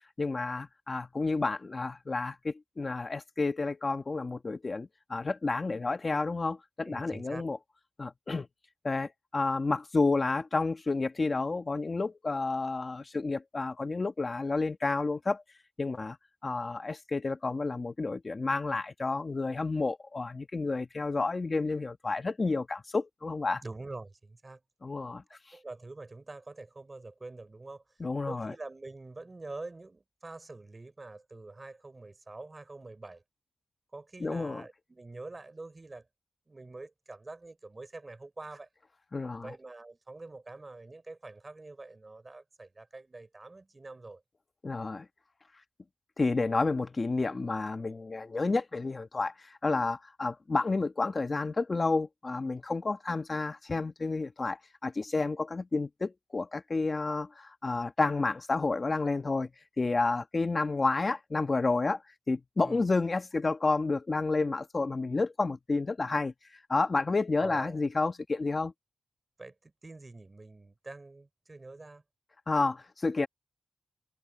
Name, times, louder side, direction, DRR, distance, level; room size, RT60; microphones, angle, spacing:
voice 1, 0.2-7.6 8.0-8.5 8.8-15.4 15.8-16.2 16.4-23.6 24.8-25.2 25.5-25.6 28.0-28.5 34.2-34.6 39.1-39.5 44.6-45.1 46.2-59.5 59.8-62.0 62.3-68.7 72.5-73.3, left 3 dB, 35° left, 1.4 m, -30 dB
voice 2, 6.8-7.5 23.6-24.6 25.5-27.8 28.3-33.2 33.9-36.1 36.5-38.7 39.4-44.2 62.6-62.8 67.4-67.8 69.4-72.0, right 2 dB, 30° right, 5.2 m, -45 dB
wide cardioid pair, 90°, 0 cm